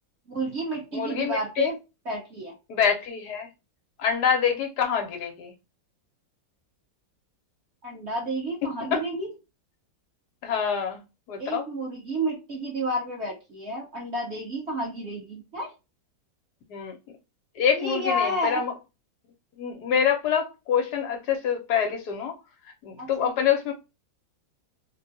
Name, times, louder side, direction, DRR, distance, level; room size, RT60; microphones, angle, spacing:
voice 1, 0.3-1.8 2.0-2.5 7.8-9.3 11.4-15.7 17.7-18.6 23.0-23.3, right 1 dB, 40° right, 1.4 m, -31 dB
voice 2, 0.9-1.7 2.7-3.5 4.0-5.5 8.9-9.0 10.4-11.0 11.3-11.6 16.7-16.9 17.6-18.7 19.6-22.3 22.8-23.7, left 7 dB, 70° left, 1.3 m, -26 dB
3.5 x 2.2 x 2.6 m
omnidirectional pair, 1.9 m